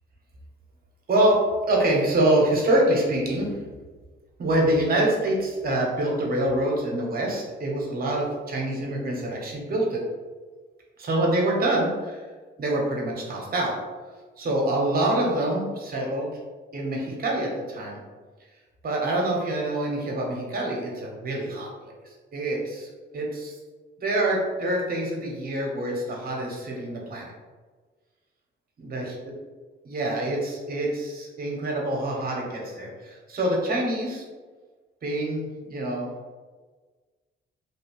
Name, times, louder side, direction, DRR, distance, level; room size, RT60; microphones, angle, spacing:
voice 1, 1.1-1.4 1.7-3.5 4.4-10.0 11.0-12.2 12.6-13.7 14.4-16.3 16.7-18.0 18.8-23.6 24.0-27.3 28.8-29.3 29.8-34.2 35.0-36.1, right 1 dB, 50° right, -2 dB, 1.0 m, -26 dB
3.2 x 2.8 x 3.0 m, 1.4 s
cardioid pair, 90°, 20 cm